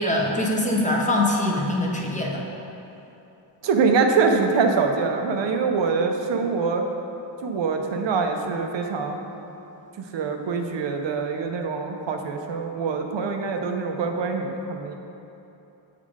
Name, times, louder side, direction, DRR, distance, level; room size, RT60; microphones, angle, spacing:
voice 1, 0.0-2.4, left 1 dB, 15° left, -2 dB, 0.6 m, -23 dB
voice 2, 3.6-6.8 7.4-9.2 10.0-14.9, right 4 dB, 75° right, 4 dB, 0.6 m, -24 dB
7.3 x 3.7 x 4.8 m, 3.0 s
wide cardioid pair, 140°, 44 cm